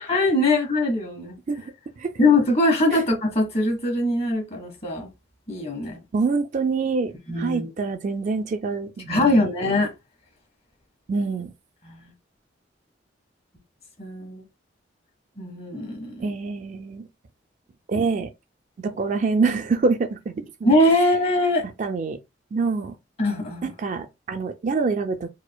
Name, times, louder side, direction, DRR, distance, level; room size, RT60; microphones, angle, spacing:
voice 1, 0.0-1.3 2.2-5.1 5.5-6.0 7.3-7.7 9.1-9.9 11.8-12.0 14.0-14.4 15.4-16.2 20.6-21.6 23.2-23.7, left 2 dB, 35° left, 1.4 m, -22 dB
voice 2, 6.1-9.5 11.1-11.5 16.2-17.1 17.9-18.3 18.8-20.7 21.8-22.2 22.5-22.9 23.6-25.3, right 4 dB, 45° right, 0.4 m, -26 dB
4.3 x 2.5 x 2.2 m
head